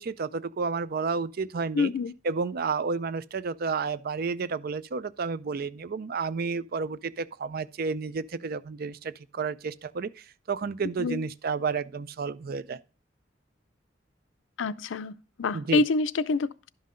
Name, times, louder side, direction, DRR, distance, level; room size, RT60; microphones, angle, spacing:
voice 1, 0.0-1.9 2.2-12.8 15.5-15.8, right 4 dB, 50° right, 0.5 m, -31 dB
voice 2, 1.7-2.1 11.0-11.2 14.6-16.7, left 3 dB, 90° left, 0.5 m, -27 dB
11.5 x 5.6 x 3.7 m
head